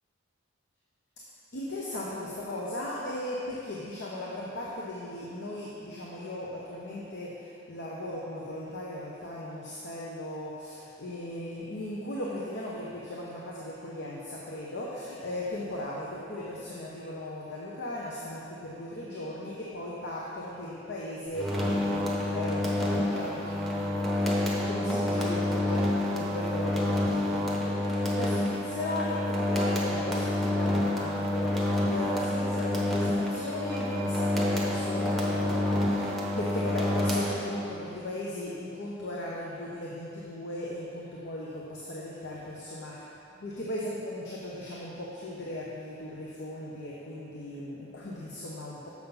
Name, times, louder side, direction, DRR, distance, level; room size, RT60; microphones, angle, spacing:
voice 1, 1.5-43.0 43.4-48.9, left 1 dB, 60° left, -4 dB, 0.8 m, -37 dB
sound 1, 21.3-37.8, left 1 dB, ahead, 0.9 m, -28 dB
6.9 x 6.4 x 5.4 m, 2.7 s
head